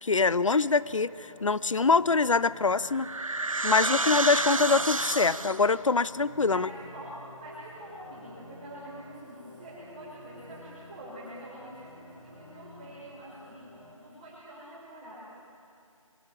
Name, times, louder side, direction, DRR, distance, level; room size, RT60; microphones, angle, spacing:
voice 1, 0.0-3.1 3.6-6.7, left 4 dB, 65° left, 19 dB, 0.6 m, -24 dB
sound 1, 0.8-13.9, left 1 dB, 5° left, 1.0 m, -51 dB
sound 2, 2.4-5.8, right 3 dB, 70° right, 1.1 m, -30 dB
voice 2, 3.7-4.2 6.5-7.1 7.4-15.1, right 1 dB, 15° right, -9 dB, 6.5 m, -46 dB
25.0 x 19.0 x 8.5 m, 2.4 s
figure-of-eight pair, 165°, 18 cm